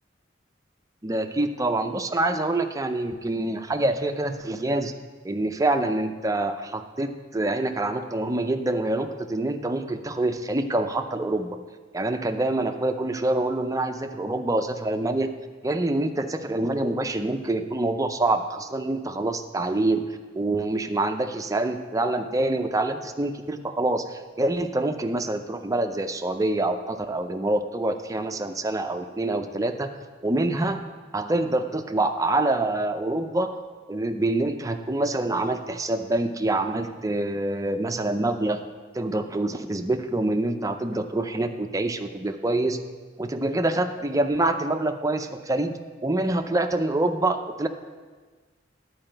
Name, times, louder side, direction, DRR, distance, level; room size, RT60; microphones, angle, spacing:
voice 1, 1.0-4.9 5.2-11.6 11.9-15.3 15.6-20.1 20.3-29.9 30.2-30.8 31.1-33.6 33.9-38.6 38.9-42.8 43.2-45.7 46.0-47.7, right 2 dB, 20° right, 6 dB, 0.5 m, -26 dB
11.0 x 4.8 x 7.7 m, 1.4 s
head